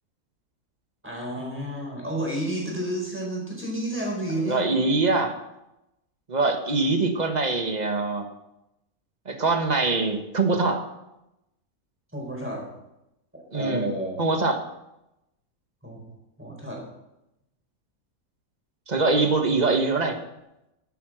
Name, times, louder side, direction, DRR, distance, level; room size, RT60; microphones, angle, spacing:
voice 1, 1.0-4.6 12.1-12.7 13.3-14.2 15.8-16.0 16.4-16.8, right 1 dB, 10° right, -2 dB, 4.5 m, -31 dB
voice 2, 4.5-5.4 6.3-8.3 9.3-10.8 13.5-13.9 14.2-14.6 18.9-20.2, right 3 dB, 30° right, 6 dB, 1.3 m, -23 dB
11.5 x 9.4 x 6.3 m, 0.90 s
omnidirectional pair, 1.5 m